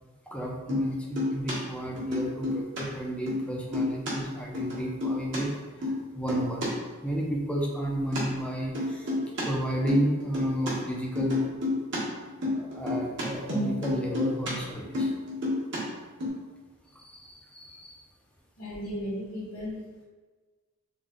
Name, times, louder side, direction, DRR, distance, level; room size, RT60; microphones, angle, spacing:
voice 1, 0.3-6.7 7.0-9.1 9.5-11.4 12.5-15.1 16.9-18.0, right 1 dB, 5° left, -2 dB, 0.5 m, -32 dB
sound 1, 0.7-0.9 1.2-1.5 2.0-2.8 3.1-3.4 3.7-4.1 4.5-5.4 5.8-6.0 6.3-6.7 8.1-8.2 8.7-9.4 9.7-10.7 11.2-12.0 12.2-14.5 14.8-15.8 16.2-16.3, left 2 dB, 60° right, 1.2 m, -29 dB
voice 2, 18.6-20.0, equal, 75° left, -6 dB, 1.4 m, -36 dB
3.7 x 2.3 x 3.7 m, 1.3 s
head